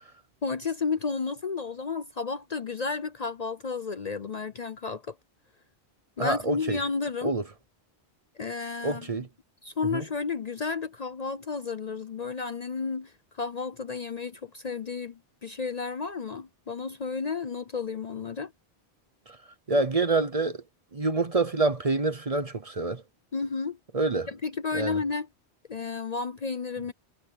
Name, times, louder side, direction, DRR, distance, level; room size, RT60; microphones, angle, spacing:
voice 1, 0.4-5.1 6.2-7.3 8.4-9.2 9.6-18.5 23.3-23.8 24.3-25.3 25.7-26.9, left 4 dB, 45° left, 0.7 m, -32 dB
voice 2, 6.2-6.8 7.2-7.4 8.8-9.3 9.9-10.0 19.3-19.4 19.7-20.6 20.9-23.0 23.9-24.3 24.7-25.0, right 3 dB, 35° right, 0.9 m, -26 dB
omnidirectional pair, 1.1 m